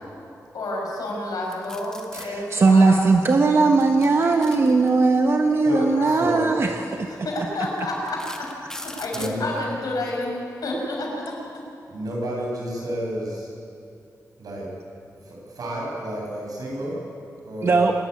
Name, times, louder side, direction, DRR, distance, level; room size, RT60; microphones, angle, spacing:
voice 1, 0.5-3.3 4.6-4.8 5.3-6.5 6.9-11.6, left 1 dB, 80° left, -2 dB, 6.5 m, -30 dB
sound 1, 1.5-2.3 3.7-5.2 6.3-6.5 7.1-7.2 7.8-9.4, left 1 dB, 10° left, 1.8 m, -38 dB
voice 2, 2.2-7.1 17.6-17.9, right 3 dB, 40° right, 4 dB, 1.1 m, -19 dB
voice 3, 5.6-6.5 9.1-9.5 11.9-13.5 14.4-14.7 15.2-17.0 17.4-17.9, right 1 dB, 75° right, -2 dB, 7.7 m, -31 dB
25.0 x 14.0 x 9.8 m, 2.6 s
wide cardioid pair, 180°, 6 cm